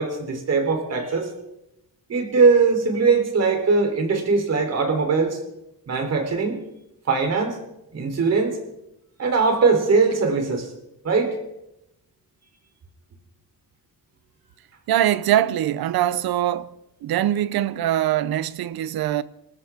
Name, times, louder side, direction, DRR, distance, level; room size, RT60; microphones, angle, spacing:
voice 1, 0.0-1.3 2.1-5.4 5.9-6.6 7.1-7.6 7.9-8.6 9.2-10.7 11.0-11.4, right 4 dB, 45° right, 3.7 m, -20 dB
voice 2, 14.9-16.8 17.0-19.2, right 12 dB, 80° right, 0.9 m, -22 dB
27.0 x 13.5 x 3.7 m
cardioid pair, 160°, 36 cm